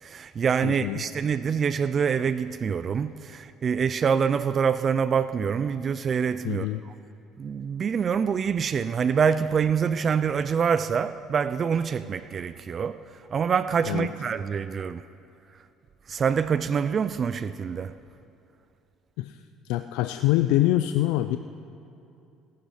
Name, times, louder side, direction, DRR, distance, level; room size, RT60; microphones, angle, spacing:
voice 1, 0.0-6.9 7.4-15.0 16.1-17.9, right 6 dB, 35° right, 0.3 m, -26 dB
voice 2, 0.6-1.0 6.4-6.8 13.9-14.1 19.2-21.4, left 15 dB, 90° left, 0.4 m, -25 dB
17.5 x 10.5 x 5.6 m
cardioid pair, 125°, 0 cm